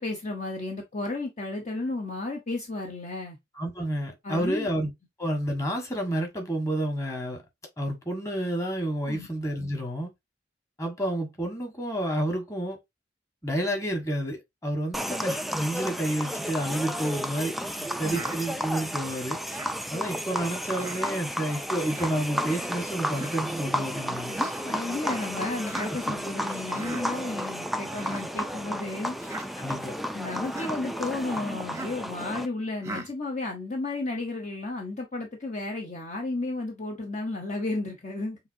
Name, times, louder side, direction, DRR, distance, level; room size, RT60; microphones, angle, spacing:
voice 1, 0.0-3.4 4.2-4.7 9.1-9.3 17.8-18.2 24.6-29.2 30.1-38.4, left 2 dB, 40° left, 0.9 m, -33 dB
voice 2, 3.6-4.9 5.2-7.4 7.8-10.1 10.8-12.8 13.4-17.6 17.8-19.6 19.9-24.4 29.6-29.9, right 1 dB, 15° left, 1.4 m, -30 dB
sound 1, 14.9-32.5, equal, ahead, 0.3 m, -32 dB
Human voice, 18.1-18.4 19.5-19.8 20.8-21.1 21.9-22.1 23.1-23.4 24.3-24.7 25.6-25.9 26.7-27.1 27.9-28.2 29.2-29.5 30.4-30.7 31.7-32.0 32.8-33.1, right 2 dB, 15° right, 0.7 m, -39 dB
6.9 x 2.6 x 2.6 m
head